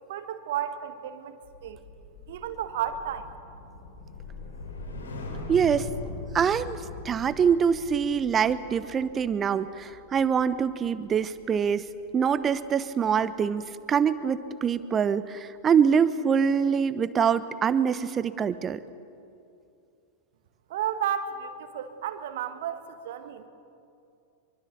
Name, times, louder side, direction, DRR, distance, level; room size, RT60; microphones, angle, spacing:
voice 1, 0.1-1.8 2.3-3.3 20.7-23.5, right 9 dB, 55° right, 9 dB, 1.6 m, -33 dB
sound 1, 1.4-11.8 12.2-12.5, left 3 dB, 65° left, 3.8 m, -41 dB
voice 2, 5.5-5.9 6.3-6.8 7.0-11.9 12.1-18.8, right 7 dB, 25° right, 15 dB, 1.0 m, -24 dB
24.5 x 24.0 x 6.9 m, 2.6 s
figure-of-eight pair, 90°, 0 cm